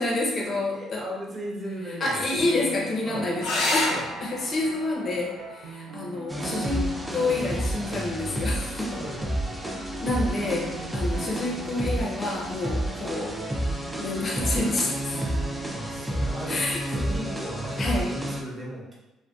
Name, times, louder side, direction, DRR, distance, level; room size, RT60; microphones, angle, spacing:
voice 1, 0.0-1.0 2.0-3.9 4.2-6.9 7.1-9.0 10.0-13.4 14.0-15.3 16.5-17.0 17.8-18.1, left 2 dB, 40° left, -2 dB, 0.6 m, -28 dB
voice 2, 0.7-2.4 3.1-3.3 3.9-4.1 8.9-9.7 15.7-16.6 17.0-19.0, right 1 dB, 30° right, -3 dB, 0.7 m, -37 dB
sound 1, 2.4-18.3, right 5 dB, 80° right, 0.4 m, -42 dB
sound 2, 3.4-8.4 10.3-11.0 14.4-14.5 14.8-14.9, left 2 dB, 85° left, 0.6 m, -33 dB
sound 3, 6.3-18.4, equal, 5° right, 0.4 m, -30 dB
2.6 x 2.1 x 2.3 m, 1.0 s
cardioid pair, 105°, 0 cm